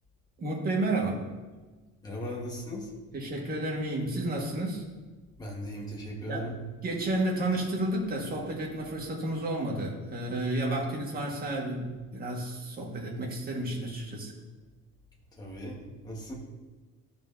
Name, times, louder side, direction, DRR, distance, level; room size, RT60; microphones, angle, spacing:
voice 1, 0.4-1.3 3.1-4.8 6.3-6.5 6.8-14.3, right 1 dB, 30° right, -2 dB, 1.7 m, -31 dB
voice 2, 2.0-2.9 5.4-6.5 15.4-16.3, equal, 15° left, -3 dB, 1.5 m, -38 dB
14.0 x 5.2 x 2.7 m, 1.3 s
cardioid pair, 165°, 29 cm